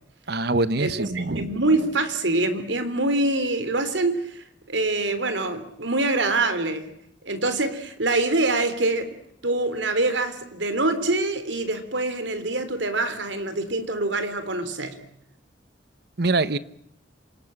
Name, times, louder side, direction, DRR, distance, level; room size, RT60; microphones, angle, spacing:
voice 1, 0.3-1.5 16.2-16.6, right 2 dB, 60° right, 16 dB, 1.1 m, -24 dB
voice 2, 1.1-6.9 7.3-9.1 9.4-15.0, right 2 dB, 85° right, 9 dB, 3.6 m, -25 dB
27.0 x 19.5 x 8.9 m, 0.77 s
head